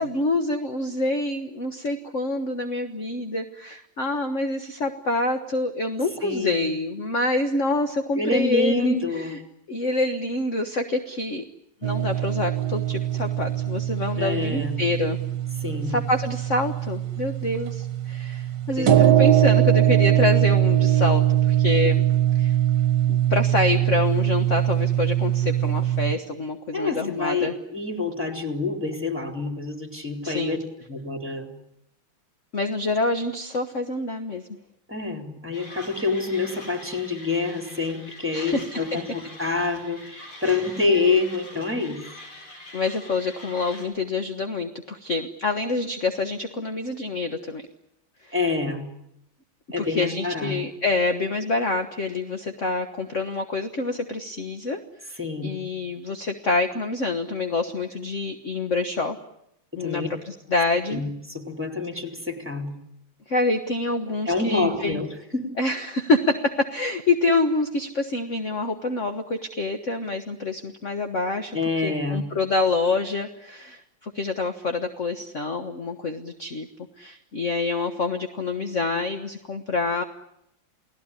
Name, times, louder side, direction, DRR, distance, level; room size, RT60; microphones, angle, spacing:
voice 1, 0.0-9.0 9.3-9.4 9.7-11.4 11.8-15.2 15.9-22.0 22.3-22.6 23.1-27.5 30.2-30.6 32.5-34.4 38.3-38.8 40.4-40.7 42.7-47.7 48.2-48.3 49.8-59.2 59.8-61.0 63.3-65.0 65.6-71.6 71.8-76.7 77.0-80.0, left 3 dB, 40° left, 7 dB, 1.5 m, -26 dB
voice 2, 6.2-6.7 8.2-9.3 14.2-14.8 15.6-16.0 18.8-19.2 26.7-30.6 30.9-31.5 34.9-42.0 48.3-48.9 49.7-50.6 55.2-55.6 59.7-60.1 60.9-62.7 64.3-65.1 65.3-65.5 71.5-72.2, left 3 dB, 5° right, 5 dB, 3.5 m, -27 dB
sound 1, 11.8-26.1, right 12 dB, 60° right, 1.8 m, -22 dB
Mechanisms, 35.5-43.9, left 1 dB, 75° left, 6.8 m, -44 dB
30.0 x 18.0 x 9.8 m, 0.81 s
omnidirectional pair, 2.3 m